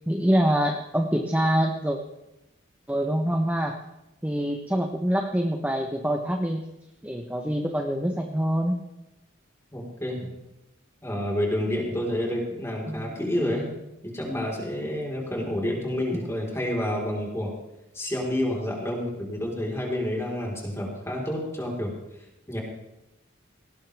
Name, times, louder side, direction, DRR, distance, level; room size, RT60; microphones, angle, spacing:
voice 1, 0.0-2.0 2.9-3.8 4.2-6.7 7.0-8.8 12.9-13.1, equal, 10° right, 3 dB, 0.9 m, -25 dB
voice 2, 9.7-10.3 11.0-13.7 14.1-17.5 17.9-21.9 22.5-22.6, left 1 dB, 15° left, -1 dB, 4.2 m, -29 dB
19.0 x 18.0 x 3.5 m, 0.93 s
head